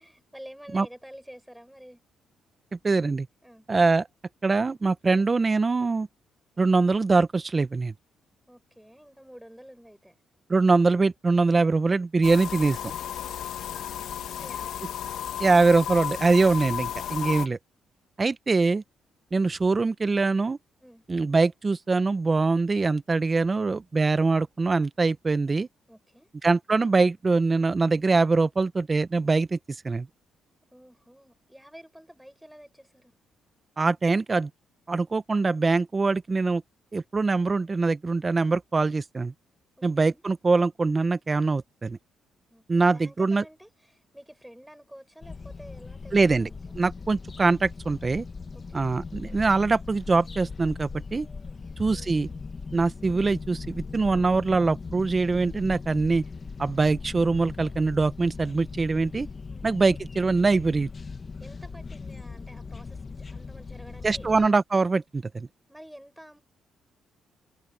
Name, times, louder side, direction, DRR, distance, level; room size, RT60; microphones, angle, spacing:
voice 1, 0.0-2.0 3.4-3.7 8.5-10.1 13.6-14.0 14.3-14.8 20.8-21.0 25.9-26.3 30.7-33.1 39.8-40.2 42.5-46.8 48.5-48.9 51.4-51.7 59.5-59.7 61.4-64.2 65.7-66.4, equal, ahead, 6.0 m, -49 dB
voice 2, 2.8-3.3 3.7-4.1 4.4-6.1 6.6-7.9 10.5-12.8 15.4-17.6 18.2-18.8 19.3-20.6 21.1-25.7 26.4-29.6 29.8-30.1 33.8-34.5 34.9-36.6 36.9-39.3 39.8-42.0 42.7-43.4 46.1-46.5 46.8-48.3 48.7-51.3 51.8-52.3 52.7-56.2 56.6-59.3 59.6-60.9 64.0-65.5, right 3 dB, 30° right, 1.0 m, -23 dB
sound 1, 12.2-17.5, left 10 dB, 75° left, 1.3 m, -33 dB
sound 2, 45.2-64.5, left 4 dB, 35° left, 1.4 m, -39 dB
cardioid pair, 90°, 0 cm